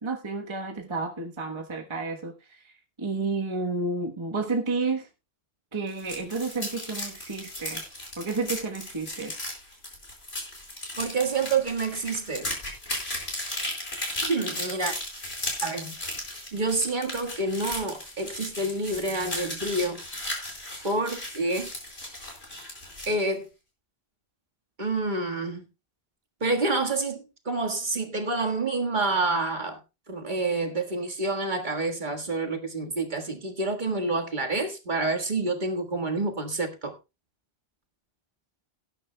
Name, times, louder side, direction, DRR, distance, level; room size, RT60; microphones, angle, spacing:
voice 1, 0.0-5.1 5.7-7.8 8.2-9.3, right 3 dB, 30° right, 1.2 m, -31 dB
sound 1, 5.9-23.2, left 1 dB, 75° left, 4.8 m, -36 dB
voice 2, 11.0-12.5 14.2-14.9 15.6-15.9 16.5-20.0 20.8-21.7 23.1-23.5 24.8-25.6 26.4-29.8 30.1-36.9, right 3 dB, 45° right, 1.8 m, -28 dB
18.5 x 10.0 x 2.2 m
omnidirectional pair, 1.1 m